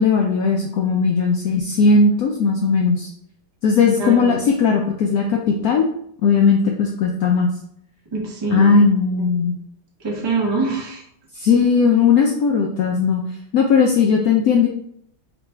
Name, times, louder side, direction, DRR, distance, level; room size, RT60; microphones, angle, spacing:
voice 1, 0.0-3.1 3.6-5.9 6.2-7.5 8.5-9.6 11.3-13.2 13.5-14.7, left 5 dB, 85° left, 1 dB, 0.8 m, -17 dB
voice 2, 4.0-4.4 8.1-8.8 10.0-11.0, right 3 dB, 40° right, -1 dB, 0.3 m, -24 dB
3.9 x 2.6 x 4.4 m, 0.69 s
omnidirectional pair, 2.1 m